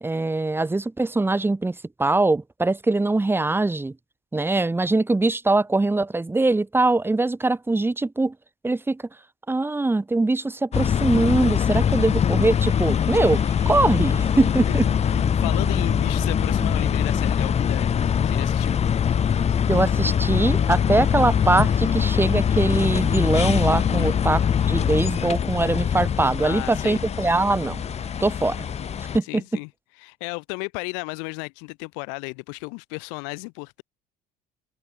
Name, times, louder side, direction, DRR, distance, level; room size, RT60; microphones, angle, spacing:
voice 1, 0.0-3.9 4.3-8.3 8.6-9.0 9.5-14.8 19.7-24.4 24.7-27.8 28.2-28.6 29.1-29.4, right 2 dB, 10° right, 1.4 m, -22 dB
sound 1, 10.7-29.2, left 8 dB, 35° left, 1.2 m, -22 dB
sound 2, 12.6-29.1, right 37 dB, 85° right, 4.6 m, -46 dB
voice 2, 15.1-17.9 18.2-18.8 24.0-24.2 26.4-27.0 29.2-29.7 30.0-33.8, left 40 dB or more, 85° left, 4.8 m, -34 dB
supercardioid pair, 95°, 18 cm